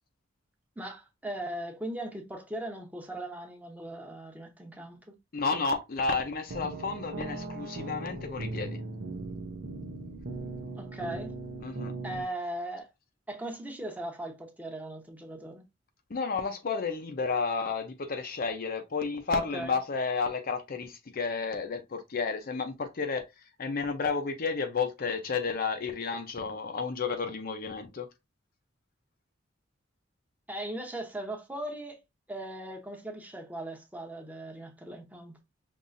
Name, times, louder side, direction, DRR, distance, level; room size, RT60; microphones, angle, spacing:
voice 1, 0.8-5.1 10.8-11.3 12.0-12.9 13.3-15.6 19.3-19.8 30.5-32.0 32.3-35.4, right 1 dB, 10° right, 0.9 m, -39 dB
voice 2, 5.3-8.8 11.6-11.9 16.1-23.2 23.6-28.1, left 4 dB, 50° left, 0.6 m, -31 dB
sound 1, 6.5-12.2, right 2 dB, 80° right, 0.8 m, -38 dB
5.4 x 2.9 x 2.6 m
head